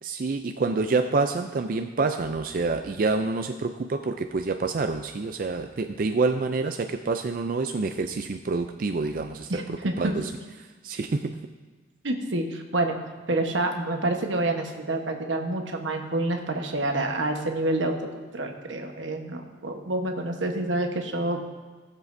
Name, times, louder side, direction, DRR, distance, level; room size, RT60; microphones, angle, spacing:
voice 1, 0.0-10.3 10.6-11.4, right 3 dB, 45° right, 6 dB, 0.4 m, -27 dB
voice 2, 9.5-10.1 12.0-13.0 13.3-17.9 18.3-21.4, right 2 dB, 80° right, 3 dB, 1.1 m, -28 dB
18.0 x 7.4 x 2.6 m, 1.3 s
head